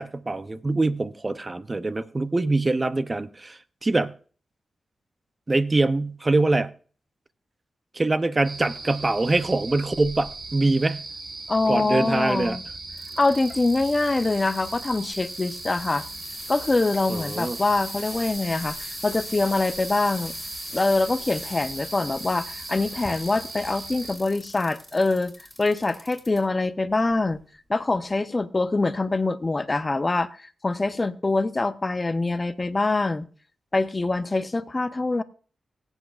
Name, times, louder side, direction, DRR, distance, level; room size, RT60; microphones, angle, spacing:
voice 1, 0.0-4.1 5.5-6.7 7.9-11.0 11.7-12.6 17.1-17.6, right 2 dB, 30° right, 0.6 m, -24 dB
sound 1, 8.4-24.2, right 2 dB, 55° right, 4.5 m, -39 dB
voice 2, 11.5-12.6 13.2-16.1 16.5-20.3 20.7-27.4 27.7-33.3 33.7-35.2, left 3 dB, 30° left, 0.7 m, -24 dB
sound 2, 12.9-26.4 26.9-27.4 28.0-28.1, left 1 dB, 10° left, 6.1 m, -40 dB
24.0 x 8.1 x 2.4 m
cardioid pair, 65°, 0 cm